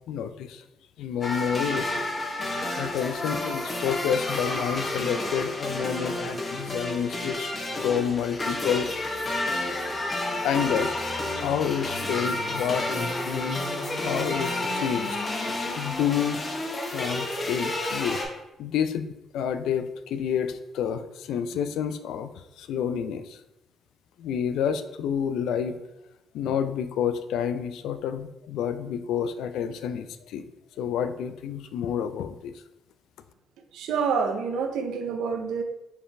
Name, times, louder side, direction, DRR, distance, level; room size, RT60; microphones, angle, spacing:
voice 1, 0.1-0.6 1.0-1.9 2.8-7.5 7.8-9.1 10.4-11.0 11.3-13.7 14.0-15.3 15.8-16.4 16.9-18.2 18.6-23.4 24.2-25.8 26.3-30.5 30.8-32.5, left 8 dB, 85° left, 10 dB, 0.3 m, -29 dB
sound 1, 1.2-18.2, left 2 dB, 30° left, 0.9 m, -30 dB
voice 2, 33.7-35.6, right 5 dB, 85° right, 6 dB, 0.5 m, -27 dB
4.7 x 3.2 x 3.3 m, 0.91 s
cardioid pair, 90°, 0 cm